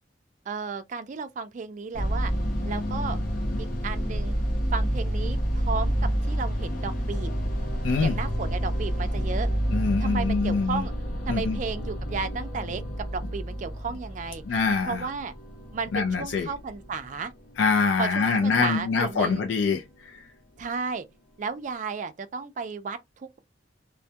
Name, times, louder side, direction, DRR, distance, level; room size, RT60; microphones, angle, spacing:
voice 1, 0.5-2.3 2.6-3.2 3.6-4.4 4.7-7.3 8.0-9.5 10.0-10.9 11.3-14.4 14.8-15.3 15.7-17.3 18.0-19.4 20.6-21.1 21.4-23.4, right 5 dB, 45° right, 0.3 m, -33 dB
sound 1, 1.9-20.3, equal, 50° left, 0.7 m, -30 dB
voice 2, 7.8-8.2 9.7-10.8 11.3-11.6 14.5-15.1 15.9-16.5 17.6-19.8 20.1-20.2, left 4 dB, 80° left, 0.4 m, -24 dB
2.1 x 2.1 x 2.7 m
head